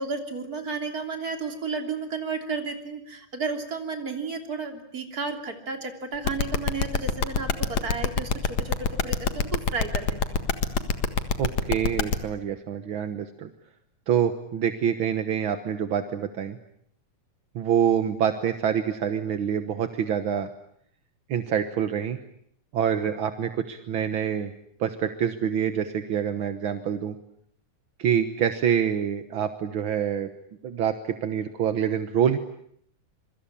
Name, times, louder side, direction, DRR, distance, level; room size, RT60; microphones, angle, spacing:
voice 1, 0.0-10.5, right 4 dB, 30° right, 5 dB, 3.4 m, -33 dB
sound 1, 6.2-12.1, left 6 dB, 60° left, 2.8 m, -24 dB
voice 2, 11.4-13.5 14.1-16.6 17.5-20.5 21.3-22.2 22.7-24.5 24.8-27.1 28.0-30.3 30.6-32.4, right 8 dB, 55° right, 9 dB, 1.5 m, -26 dB
26.5 x 24.5 x 8.7 m, 0.68 s
omnidirectional pair, 3.6 m